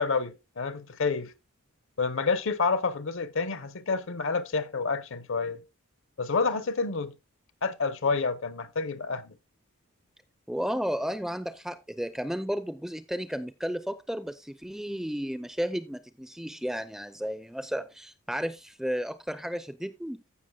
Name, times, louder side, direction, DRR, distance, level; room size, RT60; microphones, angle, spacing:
voice 1, 0.0-1.3 2.0-5.6 6.2-7.1 7.6-9.3, left 4 dB, 55° left, 0.8 m, -28 dB
voice 2, 10.5-20.2, equal, ahead, 0.5 m, -33 dB
15.5 x 6.0 x 2.3 m
head